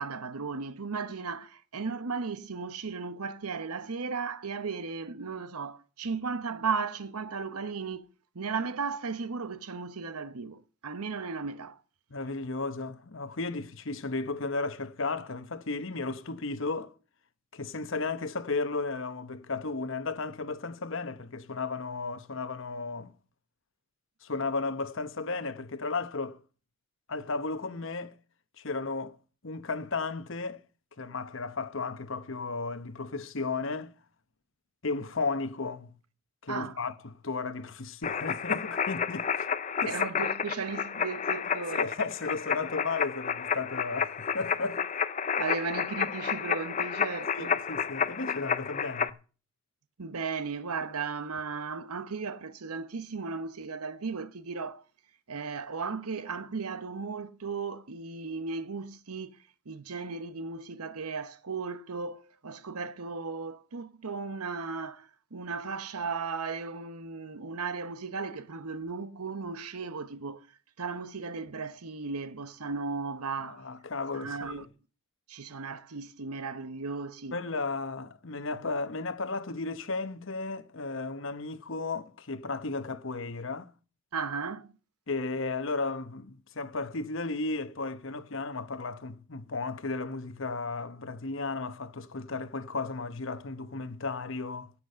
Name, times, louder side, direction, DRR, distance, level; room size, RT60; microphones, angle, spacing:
voice 1, 0.0-8.1 8.3-11.8 36.5-36.8 39.9-41.9 45.4-47.5 50.0-54.8 55.3-59.3 59.7-70.5 70.8-73.7 74.1-74.7 75.3-77.4 84.1-84.7, right 4 dB, 90° right, 0.9 m, -36 dB
voice 2, 12.1-16.9 17.5-23.1 24.2-26.4 27.1-28.1 28.6-29.2 29.4-30.6 31.0-33.9 34.8-35.9 36.4-39.5 39.8-40.0 41.7-44.9 47.3-49.1 73.4-74.6 77.3-83.7 85.1-94.7, left 3 dB, 60° left, 1.0 m, -34 dB
sound 1, 38.0-49.1, left 7 dB, 35° left, 0.5 m, -31 dB
16.5 x 6.1 x 6.8 m
head